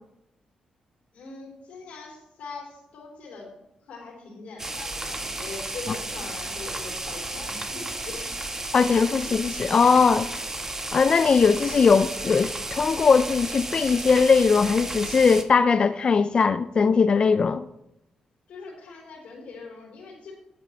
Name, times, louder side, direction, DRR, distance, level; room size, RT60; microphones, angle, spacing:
voice 1, 1.1-3.5 3.9-8.4 18.5-20.4, left 4 dB, 80° left, 3.2 m, -41 dB
sound 1, 4.6-15.4, right 2 dB, 20° right, 1.1 m, -33 dB
voice 2, 8.7-10.3 10.9-17.6, left 5 dB, 45° left, 0.3 m, -20 dB
11.0 x 7.2 x 4.2 m
cardioid pair, 80°, 2 cm